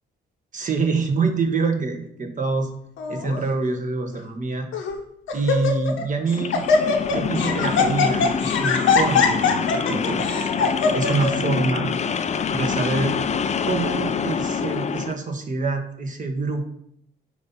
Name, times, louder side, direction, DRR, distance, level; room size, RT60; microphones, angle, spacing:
voice 1, 0.5-2.7 3.1-4.7 5.3-6.7 7.1-10.3 10.9-11.9 12.5-13.1 13.6-16.7, right 3 dB, 40° right, 4 dB, 1.3 m, -25 dB
Laughter, 3.0-3.4 4.1-4.2 4.7-5.0 5.3-6.0 6.3-11.3, left 4 dB, 80° left, 1.1 m, -22 dB
sound 1, 6.3-15.2, left 6 dB, 35° left, 0.4 m, -26 dB
8.0 x 2.8 x 5.4 m, 0.71 s
cardioid pair, 90°, 20 cm